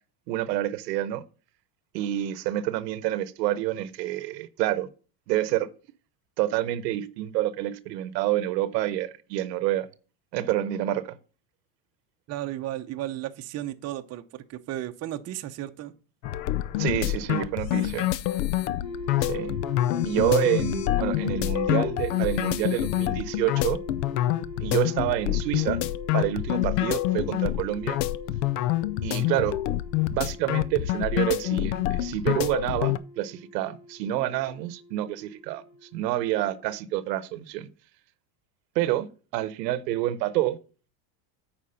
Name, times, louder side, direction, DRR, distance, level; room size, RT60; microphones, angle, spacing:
voice 1, 0.3-1.2 1.9-4.9 5.3-5.7 6.4-9.9 10.3-11.2 16.8-18.1 19.2-19.6 20.0-23.8 24.6-25.8 26.1-28.0 29.0-29.6 30.1-37.7 38.7-39.1 39.3-40.6, right 14 dB, 90° right, 1.0 m, -28 dB
voice 2, 12.3-15.9, right 13 dB, 30° right, 0.7 m, -34 dB
sound 1, 16.2-33.0, left 14 dB, 80° left, 0.7 m, -27 dB
sound 2, 18.8-36.8, left 1 dB, 50° left, 4.3 m, -41 dB
8.7 x 4.9 x 5.6 m
supercardioid pair, 135°, 48 cm